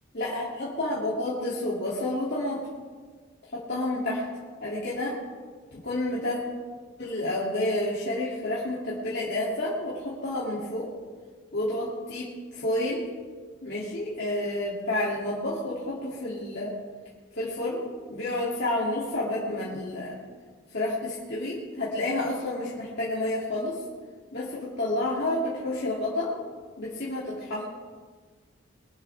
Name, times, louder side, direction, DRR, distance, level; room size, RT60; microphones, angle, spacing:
voice 1, 0.1-2.7 3.4-4.2 4.6-5.2 5.7-6.4 7.0-10.9 11.5-13.0 13.6-16.7 17.3-17.8 18.1-20.2 20.7-23.8 24.3-26.3 26.8-27.6, left 1 dB, 60° left, -7 dB, 2.7 m, -30 dB
23.0 x 12.0 x 3.5 m, 1.5 s
head